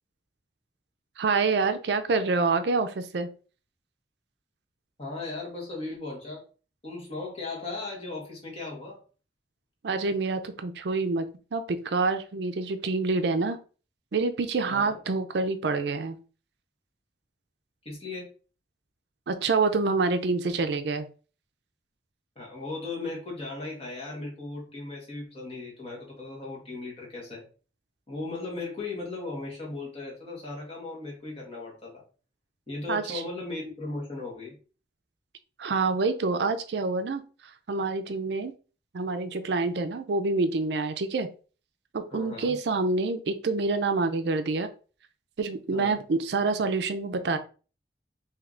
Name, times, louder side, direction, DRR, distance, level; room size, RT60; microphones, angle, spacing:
voice 1, 1.2-3.3 9.8-13.6 14.1-16.2 19.3-21.1 32.9-33.2 35.6-37.2 37.7-38.5 38.9-41.3 41.9-44.7 45.4-47.4, right 3 dB, 70° right, 9 dB, 0.5 m, -27 dB
voice 2, 5.0-6.4 6.8-9.0 14.6-15.0 17.8-18.3 22.3-27.5 28.1-32.0 32.7-34.6 42.1-42.6 45.7-46.0, left 3 dB, 35° left, -3 dB, 1.6 m, -37 dB
3.3 x 2.8 x 3.7 m, 0.37 s
head